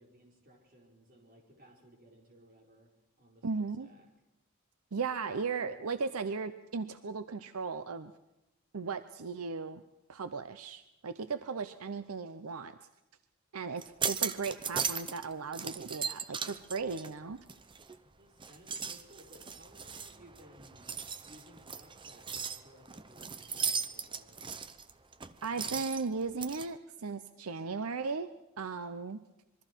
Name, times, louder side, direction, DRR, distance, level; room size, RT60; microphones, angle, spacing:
voice 1, 0.0-2.9 3.2-4.1 18.0-20.8 21.2-24.4, equal, 45° right, 0 dB, 4.5 m, -59 dB
voice 2, 3.4-3.9 4.9-8.1 8.7-9.8 10.1-12.8 13.5-17.4 25.4-28.3 28.6-29.2, right 4 dB, 80° right, 11 dB, 0.7 m, -36 dB
sound 1, 13.8-15.3 15.5-18.0 18.4-26.7, right 6 dB, 20° right, 0.7 m, -38 dB
26.0 x 22.5 x 4.6 m, 0.94 s
head